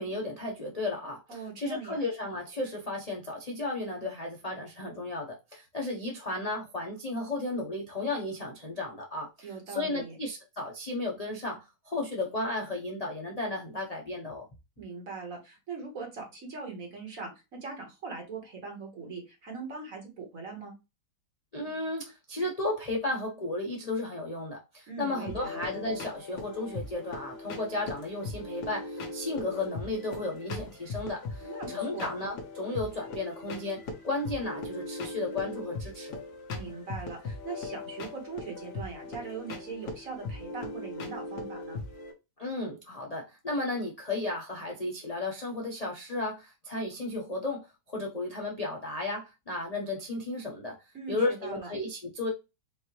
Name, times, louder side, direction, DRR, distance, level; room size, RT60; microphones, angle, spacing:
voice 1, 0.0-14.5 21.5-36.2 42.4-50.8 51.1-52.3, left 2 dB, 40° left, 0.5 m, -34 dB
voice 2, 1.3-2.0 9.4-10.2 14.8-20.7 24.9-25.6 31.4-32.1 36.5-41.8 50.9-51.7, right 4 dB, 45° right, 1.9 m, -41 dB
sound 1, 25.3-42.1, left 3 dB, 65° left, 1.6 m, -39 dB
5.1 x 2.7 x 3.0 m
omnidirectional pair, 2.0 m